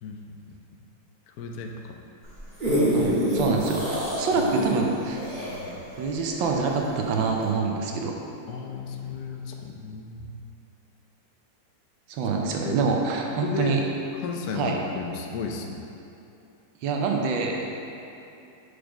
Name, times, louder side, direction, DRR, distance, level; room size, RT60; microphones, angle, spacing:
voice 1, 0.0-0.5 1.3-2.0 3.5-3.6 5.5-5.8 8.5-10.3 12.6-12.8 13.4-13.8 14.2-15.8, left 5 dB, 65° left, 2 dB, 1.0 m, -34 dB
sound 1, 2.2-6.9 7.4-7.5, equal, 30° right, 1.4 m, -26 dB
voice 2, 2.9-5.2 6.0-8.2 12.1-13.8 14.5-14.8 16.8-17.7, right 4 dB, 85° right, 0 dB, 1.4 m, -26 dB
5.1 x 4.9 x 5.0 m, 2.8 s
omnidirectional pair, 2.0 m